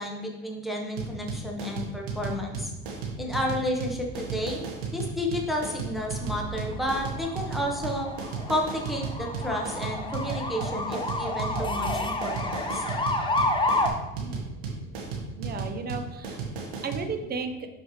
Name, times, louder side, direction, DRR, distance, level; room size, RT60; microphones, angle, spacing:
voice 1, 0.0-2.7 3.2-4.7 4.9-8.1 8.5-12.8, left 1 dB, ahead, 0 dB, 1.1 m, -31 dB
sound 1, 1.0-17.1, right 5 dB, 80° right, 1.7 m, -34 dB
sound 2, 2.0-15.6, right 5 dB, 60° right, 1.9 m, -46 dB
sound 3, 6.0-13.9, left 2 dB, 15° left, 0.8 m, -30 dB
voice 2, 15.4-16.4 16.8-17.7, right 4 dB, 30° right, 7 dB, 0.9 m, -34 dB
6.3 x 5.2 x 3.2 m, 1.1 s
supercardioid pair, 90°, 30 cm